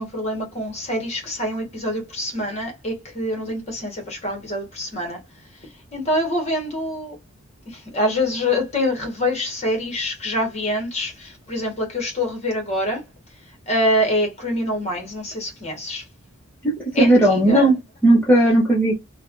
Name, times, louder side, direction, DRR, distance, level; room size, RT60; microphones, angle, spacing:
voice 1, 0.0-5.2 5.9-7.2 7.7-13.0 13.7-16.0 16.9-17.7, left 1 dB, 30° left, 1.2 m, -25 dB
voice 2, 16.6-17.8 18.0-19.0, right 1 dB, 10° left, 0.7 m, -16 dB
3.2 x 2.2 x 2.4 m
head